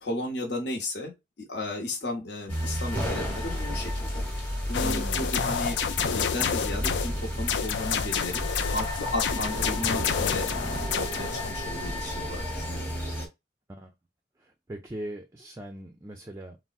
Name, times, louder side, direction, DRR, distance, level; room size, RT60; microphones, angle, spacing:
voice 1, 0.0-4.2 4.7-5.8 6.0-10.5 10.9-12.9, left 1 dB, 65° left, 0.9 m, -34 dB
sound 1, 2.5-13.3, equal, 10° left, 0.9 m, -32 dB
sound 2, 4.7-7.1 7.5-11.5, left 7 dB, 80° left, 0.4 m, -29 dB
voice 2, 4.8-5.3 13.7-13.9 14.4-16.6, right 1 dB, 15° right, 0.3 m, -39 dB
3.5 x 2.0 x 2.3 m
head